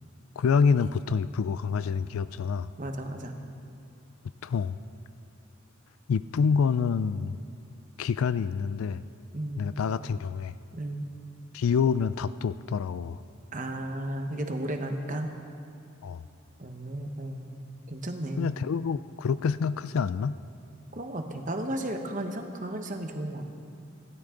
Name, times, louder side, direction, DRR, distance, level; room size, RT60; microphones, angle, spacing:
voice 1, 0.4-2.7 4.4-4.8 6.1-7.4 8.0-9.0 9.6-10.5 11.5-13.2 16.0-16.2 18.4-20.4, left 6 dB, 85° left, 15 dB, 0.4 m, -27 dB
voice 2, 2.8-3.4 9.3-9.7 10.7-11.1 13.5-15.3 16.6-17.6 17.9-18.5 20.9-23.4, right 1 dB, 35° right, 4 dB, 1.2 m, -34 dB
26.5 x 12.5 x 3.9 m, 2.5 s
head